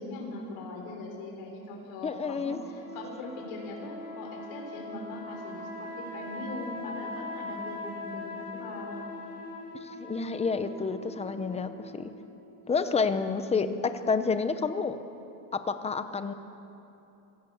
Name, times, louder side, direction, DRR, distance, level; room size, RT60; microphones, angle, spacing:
voice 1, 0.0-9.3, left 2 dB, 80° left, 0 dB, 5.5 m, -41 dB
voice 2, 2.0-2.6 9.8-12.1 12.7-15.0 15.7-16.3, left 5 dB, 15° left, 10 dB, 0.8 m, -29 dB
sound 1, 2.6-12.3, left 1 dB, 25° right, 5.4 m, -41 dB
24.5 x 17.0 x 7.2 m, 2.9 s
cardioid pair, 175°, 36 cm